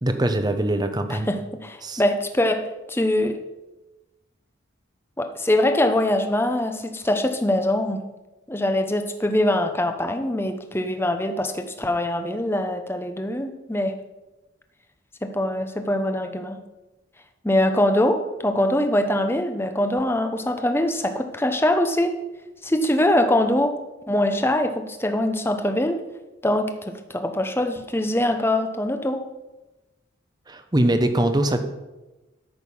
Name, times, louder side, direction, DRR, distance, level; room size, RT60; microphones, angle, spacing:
voice 1, 0.0-1.3 1.8-2.0 30.5-31.6, right 1 dB, 20° right, 8 dB, 0.8 m, -22 dB
voice 2, 1.1-3.4 5.2-8.0 8.5-13.9 15.2-16.6 17.4-22.1 22.6-23.8 24.1-26.0 26.4-29.2, left 1 dB, 10° left, 6 dB, 0.8 m, -23 dB
13.0 x 6.5 x 5.5 m, 1.1 s
head